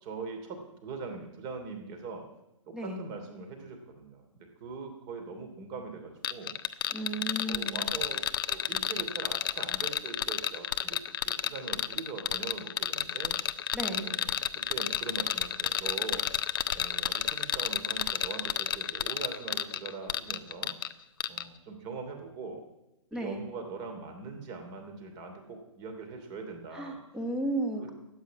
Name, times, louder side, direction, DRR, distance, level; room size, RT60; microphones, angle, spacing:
voice 1, 0.0-2.2 2.7-4.2 4.6-6.6 7.4-11.0 11.2-13.4 13.9-14.4 14.7-20.8 21.3-22.6 23.2-27.0 27.8-27.9, right 4 dB, 25° right, 5 dB, 2.8 m, -42 dB
sound 1, 6.2-20.9 21.2-21.4, left 9 dB, 45° left, 0.7 m, -31 dB
voice 2, 6.9-7.9 13.7-14.1 23.1-23.4 26.7-27.9, right 1 dB, 5° right, 4 dB, 1.9 m, -34 dB
13.5 x 8.8 x 9.6 m, 0.91 s
figure-of-eight pair, 125°, 17 cm